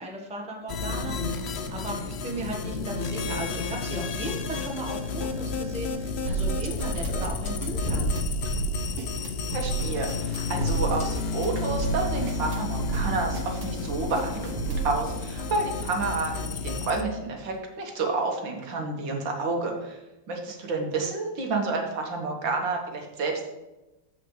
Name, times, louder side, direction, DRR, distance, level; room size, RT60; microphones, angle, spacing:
voice 1, 0.0-8.1, right 1 dB, 5° right, 0 dB, 0.9 m, -36 dB
sound 1, 0.7-17.0, left 4 dB, 90° left, 0.5 m, -32 dB
sound 2, 3.1-3.6 3.9-4.4 4.8-5.0 5.4-9.8 11.1-11.3 12.5-13.3 13.6-13.8 14.4-14.5 14.7-14.8 15.2-15.4 15.6-15.7 17.3-17.6, equal, 35° left, 3.0 m, -36 dB
sound 3, 6.3-15.0, right 5 dB, 55° right, 1.5 m, -31 dB
voice 2, 9.5-20.0 20.3-23.5, right 3 dB, 75° right, 2 dB, 2.1 m, -30 dB
14.5 x 5.0 x 3.2 m, 1.0 s
omnidirectional pair, 2.1 m